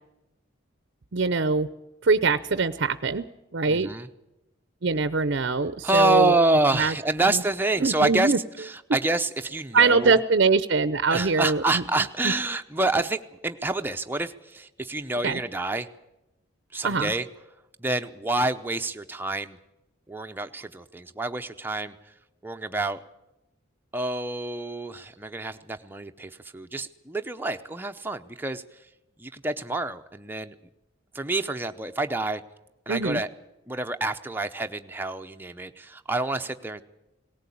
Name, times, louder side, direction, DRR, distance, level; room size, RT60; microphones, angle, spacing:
voice 1, 1.1-1.7 2.0-3.2 3.5-3.9 4.8-6.4 6.7-6.9 7.2-7.4 7.8-8.4 9.7-11.8 12.2-12.3 15.2-15.4 16.8-17.1 32.9-33.2, right 4 dB, 55° right, 13 dB, 0.6 m, -23 dB
voice 2, 3.7-4.1 5.8-8.3 8.9-10.2 11.1-15.9 16.7-17.3 17.8-19.6 20.1-21.9 22.4-23.0 23.9-28.6 29.2-30.5 31.1-32.4 32.9-33.3 33.7-36.8, right 2 dB, 10° right, 6 dB, 0.7 m, -27 dB
18.5 x 18.0 x 8.5 m, 0.94 s
head